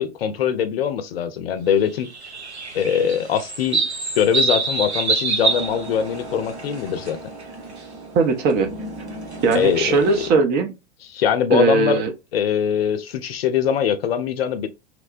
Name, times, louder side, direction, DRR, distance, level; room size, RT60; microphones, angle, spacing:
voice 1, 0.0-2.1 2.7-3.9 4.2-7.2 9.5-10.3 11.1-12.0 12.3-14.7, left 8 dB, 65° left, 0.5 m, -22 dB
sound 1, 2.0-7.1 7.4-7.8 9.0-10.2, right 4 dB, 80° right, 0.8 m, -26 dB
sound 2, 5.4-10.4, right 1 dB, 45° right, 1.1 m, -37 dB
voice 2, 8.1-8.7 9.4-10.7 11.5-12.1, right 4 dB, 30° right, 0.5 m, -19 dB
2.9 x 2.1 x 2.5 m
figure-of-eight pair, 85°, 33 cm